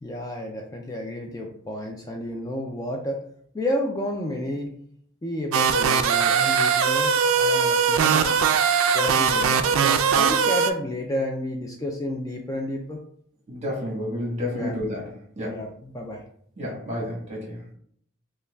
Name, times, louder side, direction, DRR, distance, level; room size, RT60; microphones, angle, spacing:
voice 1, 0.0-3.2 3.5-4.7 5.2-7.1 7.4-8.4 8.9-13.0 14.5-14.7 15.4-16.2, left 1 dB, 15° left, 1 dB, 0.3 m, -31 dB
sound 1, 5.5-10.7, right 6 dB, 65° right, 0.3 m, -20 dB
voice 2, 13.5-15.0 15.4-15.6 16.6-17.6, left 1 dB, 30° right, -3 dB, 1.3 m, -30 dB
5.4 x 2.2 x 2.3 m, 0.64 s
head